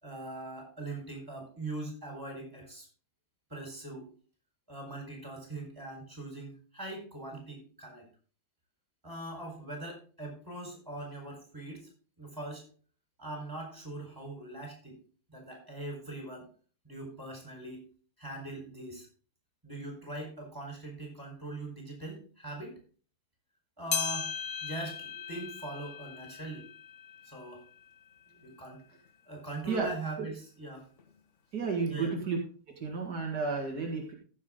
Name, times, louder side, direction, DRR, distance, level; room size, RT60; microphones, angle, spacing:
voice 1, 0.0-2.9 3.5-4.1 4.7-8.1 9.0-11.9 12.2-12.6 13.2-15.0 15.3-16.5 16.8-17.8 18.2-19.1 19.6-22.8 23.8-24.3 24.6-26.7 27.2-27.6 28.4-28.8 29.3-30.9 31.9-32.1, right 2 dB, 10° right, 1 dB, 4.6 m, -41 dB
sound 1, 23.9-28.6 29.1-29.2 30.0-30.1 31.0-31.1, left 7 dB, 50° left, 1.4 m, -38 dB
voice 2, 31.5-32.4 32.8-34.1, right 4 dB, 70° right, 0 dB, 2.5 m, -32 dB
15.0 x 7.1 x 3.8 m, 0.38 s
omnidirectional pair, 1.7 m